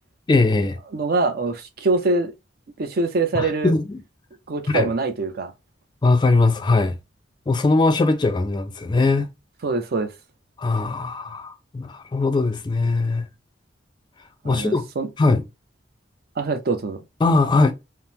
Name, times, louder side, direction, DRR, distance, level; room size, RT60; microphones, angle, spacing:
voice 1, 0.3-0.8 3.3-4.0 4.7-4.9 6.0-7.0 7.5-9.3 10.6-13.3 14.4-14.8 15.2-15.4 17.2-17.7, left 3 dB, 25° left, 0.3 m, -20 dB
voice 2, 0.9-2.3 2.8-3.7 4.5-5.5 9.6-10.1 14.4-15.1 16.4-17.0, right 3 dB, 55° right, 0.5 m, -24 dB
3.4 x 2.0 x 2.7 m
head